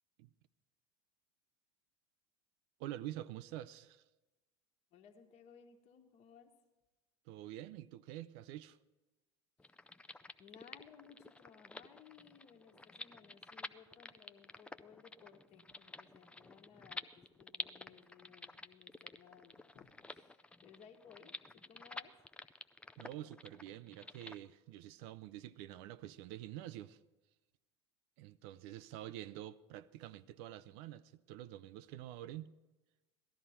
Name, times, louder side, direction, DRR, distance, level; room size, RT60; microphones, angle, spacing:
voice 1, 2.8-4.0 7.3-8.8 23.0-27.0 28.2-32.5, right 13 dB, 60° right, 0.5 m, -47 dB
voice 2, 4.9-6.5 9.6-10.1 10.4-22.1, left 7 dB, 45° left, 1.4 m, -61 dB
sound 1, 9.6-24.4, left 2 dB, 10° left, 0.4 m, -50 dB
17.5 x 12.5 x 4.3 m
hypercardioid pair, 85°, 15 cm